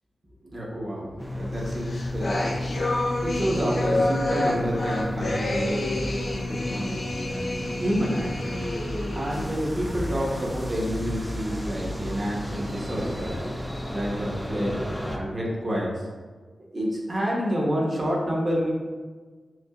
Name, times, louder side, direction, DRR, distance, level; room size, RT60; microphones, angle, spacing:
voice 1, 0.5-2.5 2.8-8.6 9.1-13.4 13.9-14.8 15.1-16.1 16.7-18.7, equal, 35° right, -4 dB, 1.0 m, -29 dB
sound 1, 1.2-15.2, left 1 dB, 5° right, 0.3 m, -33 dB
sound 2, 1.6-9.5, left 1 dB, 50° left, 0.5 m, -29 dB
5.8 x 2.1 x 2.4 m, 1.4 s
wide cardioid pair, 110°, 0 cm